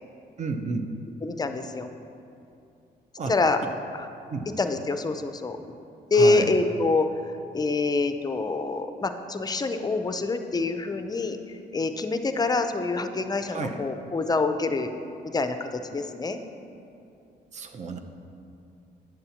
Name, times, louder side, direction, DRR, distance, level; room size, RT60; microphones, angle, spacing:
voice 1, 0.4-0.9 3.2-3.3 4.3-4.5 6.1-6.5 13.5-13.8 17.5-18.0, right 4 dB, 45° right, 5 dB, 0.6 m, -31 dB
voice 2, 1.2-1.9 3.3-3.6 3.9-4.1 4.6-5.6 6.1-14.9 15.2-16.4, left 3 dB, 25° left, 8 dB, 0.4 m, -26 dB
9.0 x 6.7 x 2.8 m, 2.6 s
cardioid pair, 80°, 17 cm